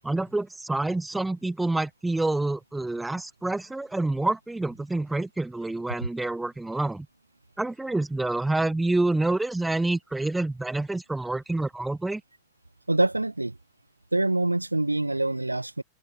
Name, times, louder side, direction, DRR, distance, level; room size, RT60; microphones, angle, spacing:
voice 1, 0.0-7.1 7.6-12.2, right 2 dB, 5° right, 0.7 m, -27 dB
voice 2, 12.9-13.5 14.1-15.8, right 2 dB, 85° right, 0.5 m, -25 dB
open air
figure-of-eight pair, 90°, 0 cm